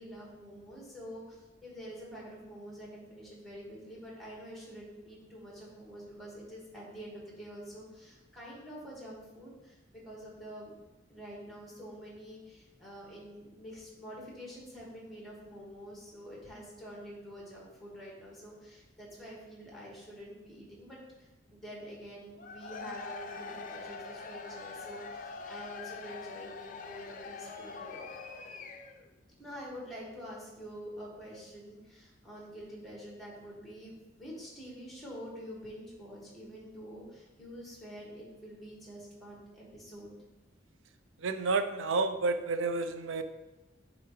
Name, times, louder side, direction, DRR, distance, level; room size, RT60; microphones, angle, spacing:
voice 1, 0.0-9.8 10.0-10.7 11.1-28.1 29.4-40.1, equal, ahead, -4 dB, 1.7 m, -47 dB
Cheering / Crowd, 22.3-29.1, left 4 dB, 45° left, 0.5 m, -44 dB
voice 2, 41.2-43.2, right 3 dB, 80° right, 9 dB, 0.5 m, -30 dB
9.2 x 3.8 x 3.1 m, 1.1 s
head